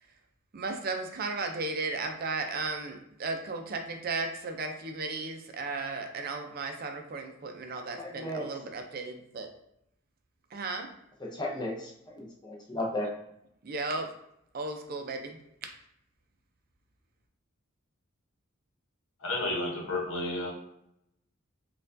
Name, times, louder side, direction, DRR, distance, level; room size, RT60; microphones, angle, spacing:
voice 1, 0.5-9.5 10.5-10.9 13.6-14.1 14.5-15.4, right 3 dB, 45° right, 5 dB, 0.5 m, -35 dB
voice 2, 8.0-8.5 11.2-13.1, left 1 dB, 20° left, -1 dB, 0.6 m, -35 dB
voice 3, 19.2-20.5, left 2 dB, 75° left, -2 dB, 1.0 m, -31 dB
4.3 x 2.3 x 2.6 m, 0.77 s
head